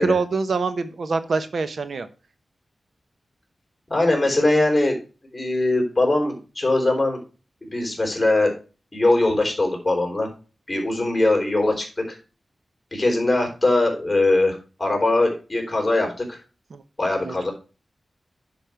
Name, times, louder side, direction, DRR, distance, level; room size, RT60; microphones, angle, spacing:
voice 1, 0.0-2.1 16.7-16.8 17.2-17.5, right 4 dB, 75° right, 11 dB, 1.0 m, -25 dB
voice 2, 3.9-5.0 5.3-7.2 7.6-8.5 8.9-10.3 10.7-12.2 12.9-16.4 17.0-17.5, left 2 dB, 20° left, 1 dB, 4.2 m, -21 dB
10.5 x 5.3 x 4.6 m, 0.33 s
wide cardioid pair, 80°, 0 cm